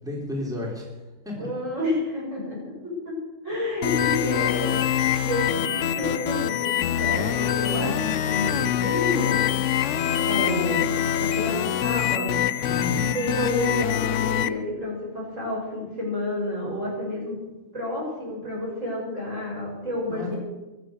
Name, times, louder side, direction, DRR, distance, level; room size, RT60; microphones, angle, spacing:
voice 1, 0.0-0.9 1.3-1.6 12.6-13.2 20.1-20.4, left 1 dB, ahead, -3 dB, 3.6 m, -32 dB
voice 2, 1.3-3.1 3.4-6.7 7.0-9.5 10.3-12.3 13.1-17.4 17.7-20.4, left 1 dB, 50° right, -4 dB, 7.8 m, -29 dB
sound 1, 3.8-14.5, left 11 dB, 60° left, 0.8 m, -24 dB
23.5 x 8.0 x 6.8 m, 1.1 s
omnidirectional pair, 1.7 m